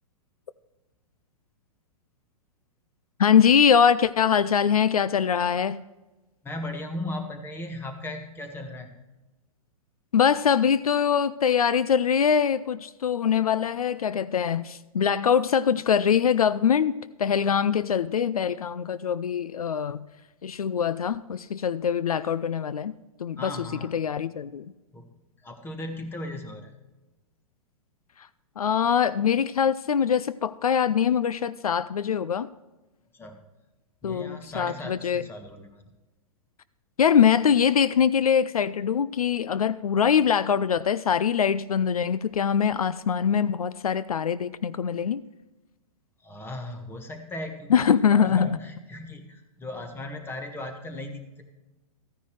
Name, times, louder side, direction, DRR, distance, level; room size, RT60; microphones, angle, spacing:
voice 1, 3.2-5.8 10.1-20.1 20.4-22.9 23.2-24.6 28.6-32.5 34.0-35.2 37.0-45.2 47.7-48.6, left 7 dB, 75° left, 0.4 m, -23 dB
voice 2, 6.4-8.9 23.4-23.9 24.9-25.1 25.4-26.7 33.1-33.4 34.0-35.8 46.2-51.4, left 1 dB, 10° left, 1.5 m, -37 dB
14.5 x 10.0 x 3.2 m
figure-of-eight pair, 110°, 19 cm